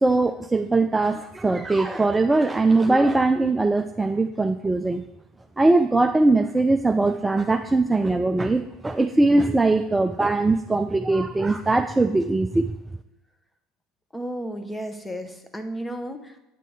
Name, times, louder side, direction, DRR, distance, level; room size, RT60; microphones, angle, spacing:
voice 1, 0.0-5.0 5.6-12.7, right 2 dB, 15° right, 7 dB, 0.4 m, -21 dB
voice 2, 14.1-16.4, right 1 dB, 5° left, 7 dB, 1.1 m, -33 dB
9.3 x 7.5 x 3.4 m, 0.95 s
hypercardioid pair, 65°, 0 cm